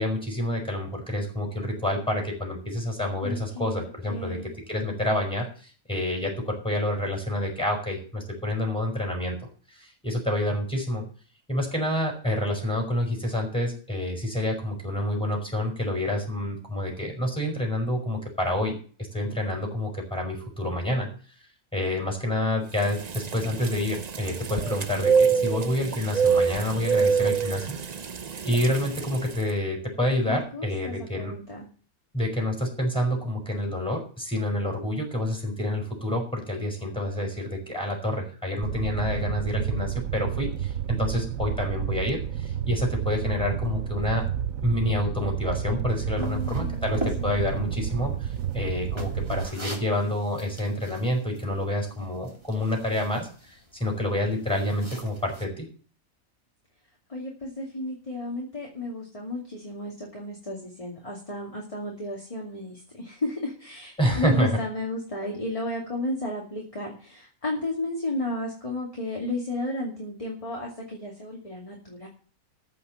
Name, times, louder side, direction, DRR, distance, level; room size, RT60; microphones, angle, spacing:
voice 1, 0.0-11.1 11.5-18.8 19.1-21.1 21.7-27.8 28.4-31.4 32.1-44.2 44.6-55.7 64.0-64.6, left 1 dB, 5° left, 1 dB, 5.4 m, -28 dB
voice 2, 3.2-4.5 30.3-31.7 46.2-46.9 47.2-47.5 57.1-72.1, left 1 dB, 25° left, -2 dB, 2.6 m, -33 dB
sound 1, 22.8-29.4, right 6 dB, 40° right, 0.7 m, -26 dB
Fire, 38.6-49.5, right 9 dB, 70° right, 1.1 m, -30 dB
sound 2, 46.2-55.4, right 1 dB, 20° right, 2.7 m, -42 dB
14.5 x 5.9 x 7.8 m, 0.41 s
omnidirectional pair, 1.5 m